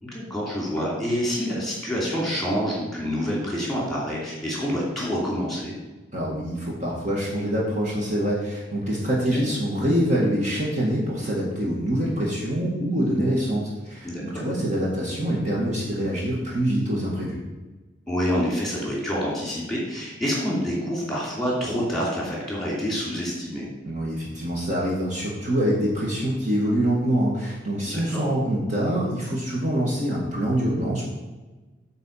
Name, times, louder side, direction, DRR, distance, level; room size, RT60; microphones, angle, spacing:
voice 1, 0.0-5.7 9.3-9.4 14.0-14.4 18.1-23.7 27.9-28.2, equal, ahead, -4 dB, 2.7 m, -27 dB
voice 2, 6.1-17.4 23.9-31.1, equal, 35° right, -4 dB, 1.7 m, -25 dB
8.9 x 4.3 x 7.1 m, 1.2 s
head